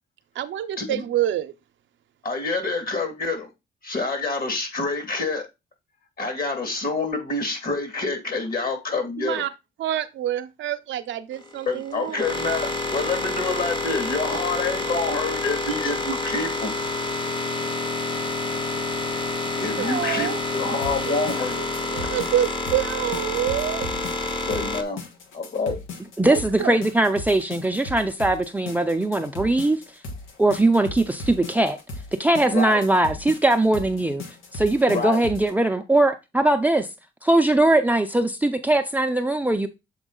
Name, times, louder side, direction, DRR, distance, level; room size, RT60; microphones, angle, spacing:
voice 1, 0.3-1.5 9.2-9.5 9.8-12.2 19.8-20.4 21.1-21.3 21.9-23.9 26.2-26.8, right 12 dB, 70° right, 0.7 m, -27 dB
voice 2, 2.2-3.5 3.8-5.5 6.2-9.4 11.7-16.7 19.6-20.3 20.5-21.6 24.5-25.0 25.3-25.8 26.6-26.7 32.4-32.8 34.9-35.2, left 3 dB, 50° left, 2.3 m, -27 dB
sound 1, 11.3-24.8, left 2 dB, 25° left, 1.0 m, -28 dB
sound 2, 20.8-35.5, left 2 dB, 90° left, 1.4 m, -38 dB
voice 3, 26.2-29.8 30.4-31.8 32.2-34.2 34.5-36.9 37.2-39.7, right 2 dB, 10° right, 0.5 m, -20 dB
7.2 x 3.9 x 3.8 m
cardioid pair, 90°, 20 cm